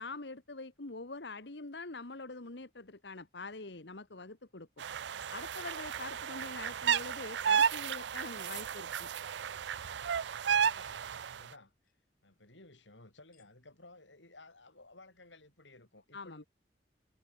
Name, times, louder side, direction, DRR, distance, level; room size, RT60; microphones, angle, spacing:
voice 1, 0.0-4.7 5.3-9.1 16.1-16.4, left 3 dB, 70° left, 1.6 m, -45 dB
sound 1, 4.8-11.4, right 7 dB, 75° right, 0.5 m, -33 dB
sound 2, 7.3-7.5 8.3-8.6 9.1-9.3 10.1-10.3 10.8-11.0 11.8-11.9 13.3-13.5, left 11 dB, 45° left, 6.0 m, -69 dB
voice 2, 10.4-11.7 12.2-16.4, left 2 dB, 90° left, 7.7 m, -57 dB
head